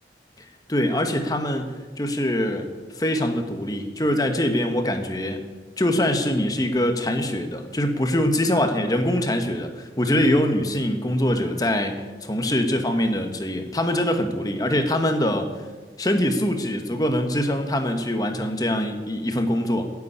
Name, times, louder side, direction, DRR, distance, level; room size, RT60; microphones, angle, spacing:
voice 1, 0.7-2.7 3.0-5.4 5.8-15.5 16.0-19.9, left 1 dB, 20° left, 6 dB, 1.3 m, -23 dB
12.5 x 8.5 x 9.9 m, 1.3 s
head